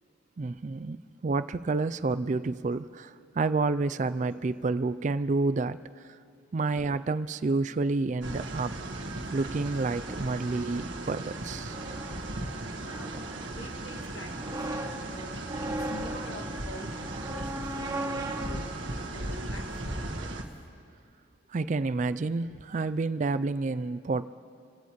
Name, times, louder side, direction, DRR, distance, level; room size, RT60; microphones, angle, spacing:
voice 1, 0.4-5.8 6.5-8.7 9.3-11.8 21.5-24.3, right 3 dB, 40° right, 13 dB, 0.4 m, -29 dB
sound 1, 8.2-20.4, right 2 dB, 75° right, 1.4 m, -37 dB
sound 2, 10.0-19.9, right 1 dB, 20° right, 0.9 m, -39 dB
voice 2, 12.9-18.7 19.1-20.4, left 1 dB, 70° left, 1 dB, 2.0 m, -47 dB
28.0 x 17.0 x 3.1 m, 2.6 s
head